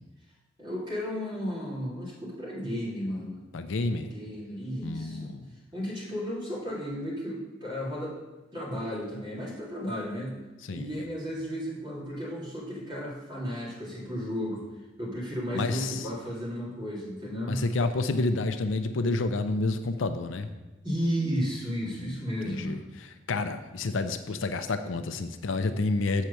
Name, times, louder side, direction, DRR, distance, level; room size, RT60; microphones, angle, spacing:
voice 1, 0.6-3.4 3.9-5.3 5.7-8.2 8.5-10.3 10.7-14.6 15.0-17.6 20.8-22.8 23.8-23.9, equal, 25° right, -6 dB, 2.6 m, -33 dB
voice 2, 3.5-4.1 4.8-5.5 10.7-10.9 15.5-16.1 17.5-20.5 21.8-26.2, left 3 dB, 70° left, 9 dB, 0.5 m, -29 dB
7.4 x 4.4 x 6.7 m, 1.1 s
head